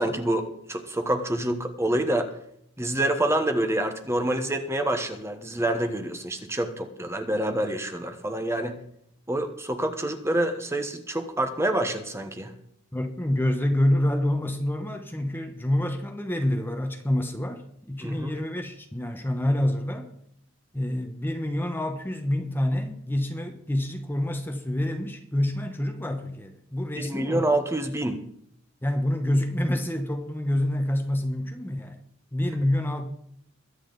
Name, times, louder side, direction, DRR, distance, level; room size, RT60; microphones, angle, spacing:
voice 1, 0.0-2.3 2.8-8.8 9.3-12.5 18.0-18.4 26.9-28.2, right 1 dB, 15° right, 1.1 m, -27 dB
voice 2, 12.9-20.1 20.7-27.5 28.8-32.0 32.3-33.0, left 1 dB, 10° left, 1.0 m, -27 dB
22.0 x 8.8 x 4.0 m
head